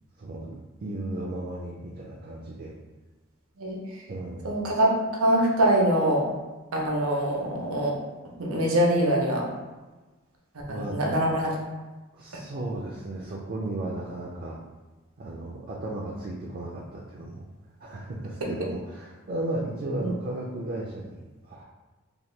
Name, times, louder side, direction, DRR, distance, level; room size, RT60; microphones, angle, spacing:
voice 1, 0.2-2.7 4.1-4.6 10.7-11.0 12.1-14.6 15.2-17.5 17.8-21.6, right 2 dB, 45° right, -2 dB, 0.4 m, -35 dB
voice 2, 3.6-4.0 4.4-4.9 5.2-6.3 6.7-8.0 8.4-9.5 10.7-11.6 20.0-20.1, right 1 dB, 80° right, -1 dB, 0.7 m, -24 dB
2.8 x 2.2 x 3.2 m, 1.2 s
head